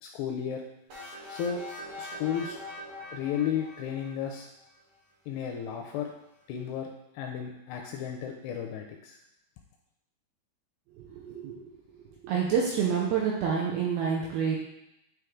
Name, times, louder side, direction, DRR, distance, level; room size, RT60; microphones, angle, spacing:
voice 1, 0.0-0.6 1.3-1.6 2.0-2.6 3.1-4.5 5.3-6.1 6.5-6.9 7.1-9.2, left 8 dB, 85° left, 2 dB, 2.4 m, -33 dB
sound 1, 0.9-4.7, left 1 dB, 55° right, 1.8 m, -43 dB
voice 2, 11.0-11.8 12.2-14.6, right 6 dB, 85° right, -2 dB, 2.3 m, -28 dB
8.9 x 3.2 x 3.6 m, 0.84 s
omnidirectional pair, 5.1 m